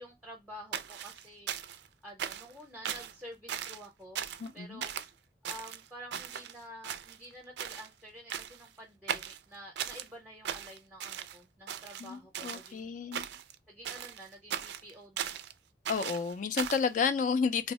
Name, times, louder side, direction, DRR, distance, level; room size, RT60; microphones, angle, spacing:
voice 1, 0.0-1.5 2.0-4.2 4.5-4.9 5.5-12.9 13.7-15.4, equal, 5° right, 0.6 m, -49 dB
sound 1, 0.7-1.9 2.2-2.5 2.8-3.1 3.5-3.9 4.2-4.5 4.8-5.1 5.4-6.5 6.8-7.3 7.6-7.9 8.3-8.7 9.1-10.1 10.4-11.4 11.7-12.7 13.1-13.5 13.8-15.5 15.8-16.9, right 9 dB, 70° right, 0.3 m, -38 dB
voice 2, 4.4-4.8 12.0-13.2 15.9-17.7, left 5 dB, 45° left, 0.3 m, -31 dB
2.7 x 2.0 x 4.0 m
head